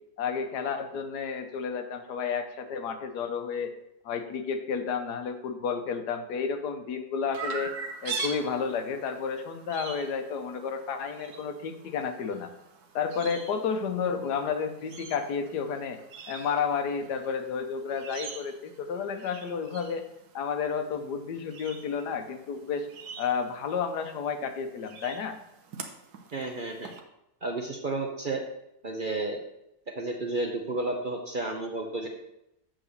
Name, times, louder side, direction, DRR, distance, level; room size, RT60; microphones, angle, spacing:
voice 1, 0.2-3.7 4.0-7.7 8.0-12.5 12.9-16.0 16.3-20.0 20.3-22.9 23.2-25.4, left 6 dB, 85° left, 6 dB, 1.4 m, -31 dB
Chirp tweet, 7.3-27.0, right 5 dB, 75° right, 1.4 m, -43 dB
voice 2, 26.3-26.9 27.4-28.4 28.8-29.4 29.9-32.1, right 2 dB, 45° right, 2 dB, 0.7 m, -32 dB
7.7 x 3.8 x 6.5 m, 0.83 s
omnidirectional pair, 1.7 m